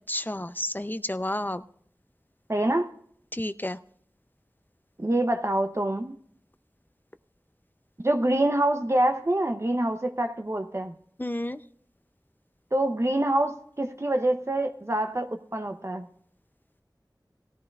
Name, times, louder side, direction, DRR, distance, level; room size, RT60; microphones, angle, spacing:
voice 1, 0.1-1.6 3.3-3.8 11.2-11.6, left 1 dB, 25° left, 12 dB, 0.5 m, -31 dB
voice 2, 2.5-2.9 5.0-6.2 8.0-10.9 12.7-16.1, right 1 dB, 40° right, 5 dB, 0.7 m, -26 dB
18.0 x 14.0 x 2.4 m, 0.63 s
wide cardioid pair, 40°, 8 cm